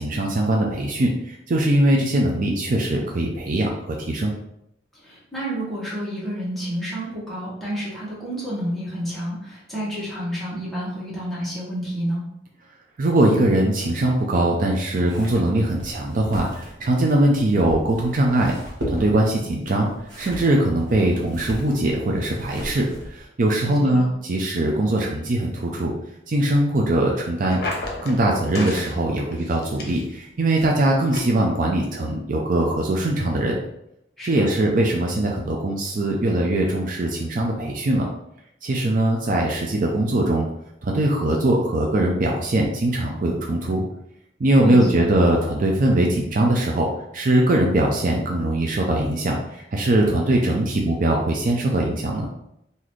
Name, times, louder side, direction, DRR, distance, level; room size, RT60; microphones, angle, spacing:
voice 1, 0.0-4.3 13.0-18.5 18.9-19.9 20.2-25.9 26.3-27.6 28.0-33.6 34.2-38.1 38.6-40.5 40.8-43.8 44.4-46.9 47.1-52.3, right 1 dB, 50° right, 0 dB, 0.5 m, -21 dB
voice 2, 5.0-12.2 23.6-24.0 34.2-34.5 44.6-45.1, equal, ahead, -8 dB, 1.3 m, -30 dB
sound 1, 15.1-23.3, equal, 80° right, 1.2 m, -37 dB
sound 2, 27.4-28.2 28.5-28.9 29.3-30.2 30.6-30.7 31.1-31.2, left 2 dB, 60° left, 0.8 m, -32 dB
3.9 x 2.7 x 3.1 m, 0.79 s
head